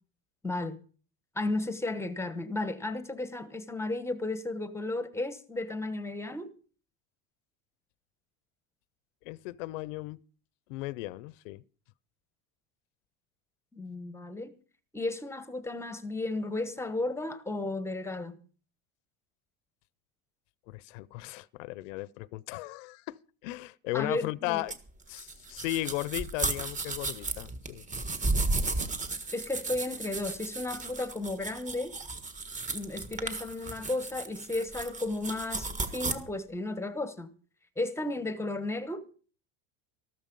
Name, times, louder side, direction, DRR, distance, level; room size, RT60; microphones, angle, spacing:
voice 1, 0.4-0.8 1.3-6.5 13.7-14.5 14.9-18.4 23.9-24.6 29.3-31.9 32.7-37.3 37.8-39.1, left 2 dB, 5° left, 1.0 m, -34 dB
voice 2, 9.2-10.2 10.7-11.6 20.7-24.8 25.1-27.8, left 18 dB, 80° left, 0.7 m, -36 dB
sound 1, 24.7-36.1, right 3 dB, 20° right, 1.6 m, -34 dB
14.0 x 13.0 x 5.3 m
cardioid pair, 150°, 37 cm